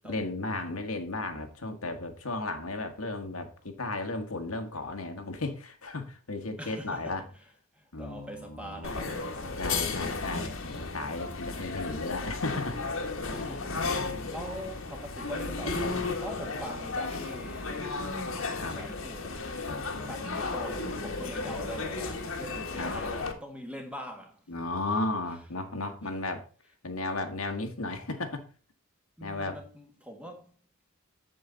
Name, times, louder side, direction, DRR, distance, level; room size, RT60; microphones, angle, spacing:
voice 1, 0.1-7.2 7.9-8.9 9.6-12.8 13.9-14.3 18.5-18.8 19.7-20.2 21.4-21.5 22.8-22.9 24.5-26.5 26.8-28.4 29.2-29.6, left 2 dB, 90° left, 1.6 m, -35 dB
voice 2, 6.6-7.4 7.7-10.5 13.3-17.8 18.6-19.5 20.0-24.5 24.9-25.0 29.2-30.6, equal, 5° right, 1.6 m, -43 dB
sound 1, 8.8-23.3, left 3 dB, 70° left, 1.6 m, -34 dB
8.0 x 7.5 x 4.0 m
head